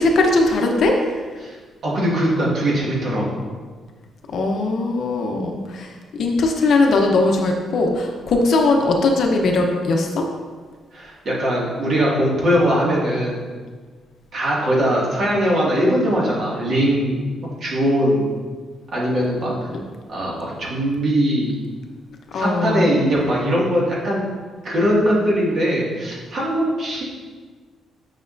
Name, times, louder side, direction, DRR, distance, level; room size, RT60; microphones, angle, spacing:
voice 1, 0.0-1.2 4.3-10.2 22.3-22.9, left 2 dB, 55° left, 2 dB, 0.9 m, -19 dB
voice 2, 1.8-3.4 10.9-13.5 14.3-18.3 18.9-19.5 20.1-21.5 22.3-24.3 24.6-27.0, equal, 45° right, -5 dB, 2.1 m, -20 dB
9.3 x 6.1 x 2.6 m, 1.5 s
cardioid pair, 155°, 0 cm